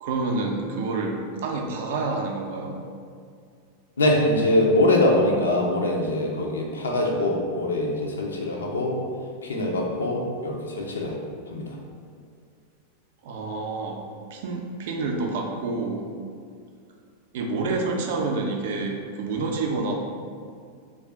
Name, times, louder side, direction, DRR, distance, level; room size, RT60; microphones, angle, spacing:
voice 1, 0.0-1.1 1.4-2.8 13.2-14.0 14.3-16.1 17.3-20.0, right 3 dB, 55° right, 2 dB, 0.4 m, -28 dB
voice 2, 4.0-9.0 9.4-11.2 11.5-11.8, left 1 dB, 75° left, 0 dB, 0.4 m, -23 dB
2.4 x 2.3 x 3.4 m, 2.2 s
figure-of-eight pair, 90°, 0 cm